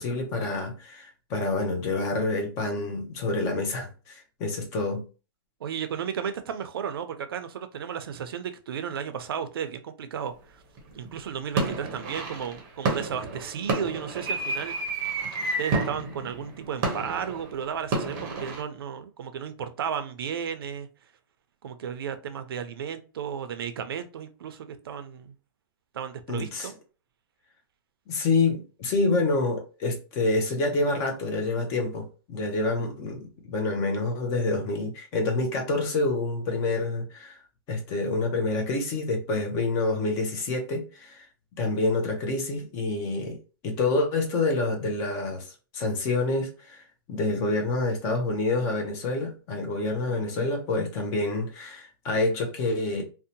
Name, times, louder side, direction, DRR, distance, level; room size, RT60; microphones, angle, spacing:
voice 1, 0.0-5.0 26.3-26.7 28.1-37.4 37.7-41.3 41.6-43.4 43.6-46.8 47.1-53.0, left 2 dB, 25° left, 0.5 m, -27 dB
voice 2, 5.6-10.6 10.9-15.1 15.6-20.9 21.6-25.3 25.9-26.7, right 8 dB, 75° right, 0.5 m, -34 dB
sound 1, 10.8-11.1 11.6-18.6, right 3 dB, 30° right, 0.6 m, -30 dB
2.6 x 2.1 x 2.7 m
hypercardioid pair, 160°, 12 cm